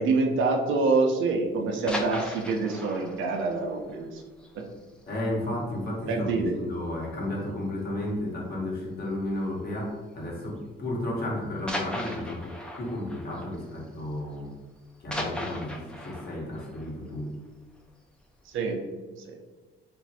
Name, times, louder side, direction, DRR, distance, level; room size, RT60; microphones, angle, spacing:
voice 1, 0.0-4.2 4.6-4.7 6.1-6.6 18.5-18.8 19.3-19.4, right 3 dB, 80° right, 2 dB, 0.5 m, -26 dB
sound 1, 1.6-5.2 5.5-5.6 6.0-6.2 6.5-6.6 7.4-7.9 9.1-9.3 10.2-10.3 11.7-14.5 14.7-17.8 18.3-18.4, left 1 dB, 5° left, 0.4 m, -38 dB
voice 2, 5.1-14.5 15.0-17.3, left 1 dB, 50° left, -3 dB, 1.0 m, -33 dB
3.0 x 2.5 x 2.7 m, 1.3 s
cardioid pair, 90°, 20 cm